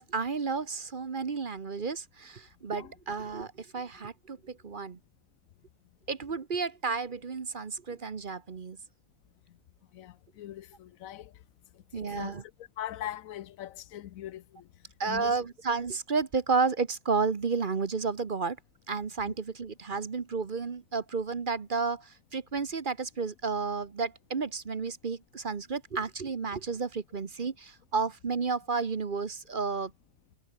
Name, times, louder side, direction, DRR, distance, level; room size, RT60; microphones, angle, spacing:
voice 1, 0.0-5.0 6.1-8.8 11.9-12.4 15.0-18.6 18.9-29.9, right 4 dB, 40° right, 1.1 m, -32 dB
voice 2, 9.9-11.3 12.0-14.7 15.1-15.4 19.3-19.4, left 12 dB, 80° left, 1.1 m, -41 dB
omnidirectional pair, 1.4 m